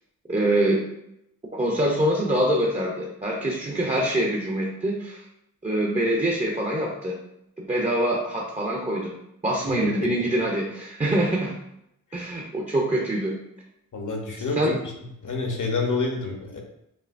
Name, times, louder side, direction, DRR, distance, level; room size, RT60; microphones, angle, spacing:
voice 1, 0.3-0.8 1.5-5.2 5.6-7.1 7.6-9.1 9.4-11.5 12.1-13.3 14.6-14.8, right 1 dB, 20° right, -1 dB, 0.7 m, -24 dB
voice 2, 13.9-14.8 15.2-16.6, left 3 dB, 65° left, 1 dB, 1.0 m, -28 dB
5.5 x 2.8 x 2.6 m, 0.80 s
wide cardioid pair, 85°, 33 cm